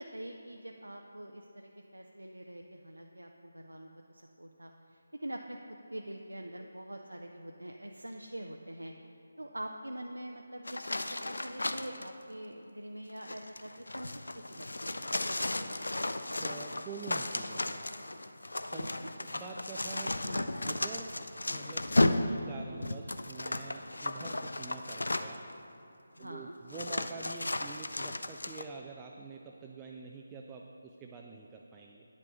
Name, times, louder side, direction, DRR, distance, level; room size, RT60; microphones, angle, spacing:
voice 1, 0.0-5.6 5.9-8.9 9.4-15.2 18.7-19.1 26.2-26.5, right 1 dB, 85° right, 2 dB, 0.5 m, -44 dB
sound 1, 10.6-12.1 13.1-25.5 26.2-26.3 26.7-28.6, left 2 dB, 70° left, 0.4 m, -34 dB
voice 2, 16.4-17.8 18.6-21.1 21.5-25.4 26.2-32.0, right 4 dB, 15° right, 0 dB, 0.3 m, -46 dB
9.7 x 7.4 x 3.7 m, 2.8 s
figure-of-eight pair, 155°, 0 cm